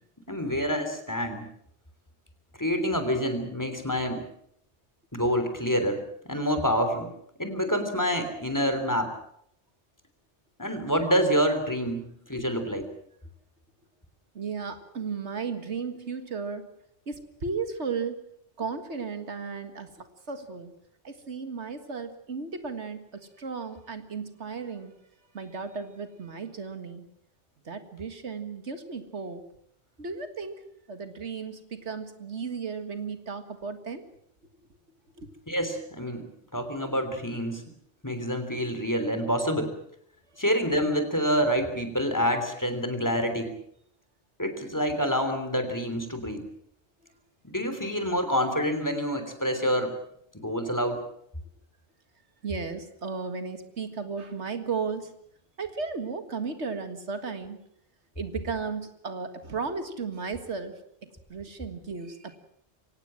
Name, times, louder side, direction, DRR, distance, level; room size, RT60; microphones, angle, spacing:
voice 1, 0.3-1.5 2.6-4.2 5.1-7.1 7.4-9.1 10.6-12.0 12.3-12.8 35.5-36.2 36.5-37.6 38.0-39.8 40.4-43.6 44.4-46.5 47.4-49.9 50.3-51.0, equal, 15° left, 7 dB, 3.4 m, -27 dB
voice 2, 14.3-16.7 17.1-18.2 18.6-20.7 21.0-24.9 25.3-27.1 27.7-29.4 30.0-34.1 35.2-35.3 50.6-50.7 52.4-55.2 55.6-57.6 58.2-62.4, right 5 dB, 90° right, 8 dB, 2.1 m, -35 dB
24.0 x 18.0 x 7.7 m, 0.70 s
omnidirectional pair, 1.1 m